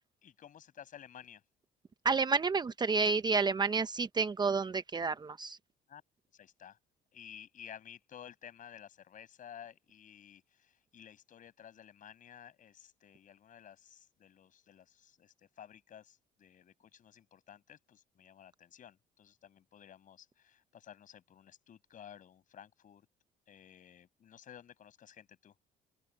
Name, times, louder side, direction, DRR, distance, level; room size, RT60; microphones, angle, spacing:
voice 1, 0.2-1.4 5.9-6.0 6.3-6.8 7.1-23.1 23.5-25.5, left 9 dB, 50° left, 6.3 m, -54 dB
voice 2, 2.0-5.6, right 4 dB, 25° right, 0.8 m, -30 dB
open air
cardioid pair, 110°, 17 cm